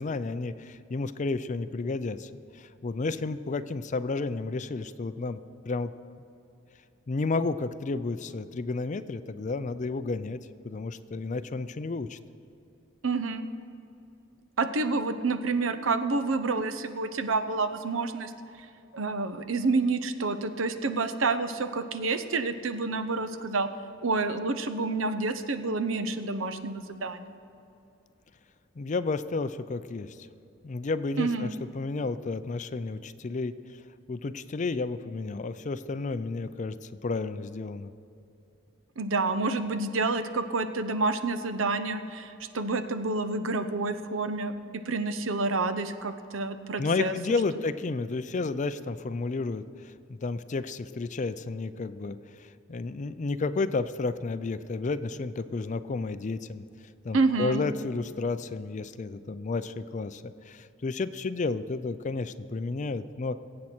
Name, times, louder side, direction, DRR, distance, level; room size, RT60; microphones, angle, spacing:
voice 1, 0.0-5.9 7.1-12.2 28.8-30.2 30.6-33.8 34.1-37.9 46.8-56.6 57.0-63.4, left 3 dB, 40° left, 13 dB, 0.4 m, -32 dB
voice 2, 13.0-13.5 14.6-18.3 18.9-23.7 24.0-27.4 31.2-31.5 39.0-47.2 57.1-57.6, right 3 dB, 80° right, 10 dB, 0.7 m, -28 dB
21.5 x 8.5 x 4.4 m, 2.8 s
head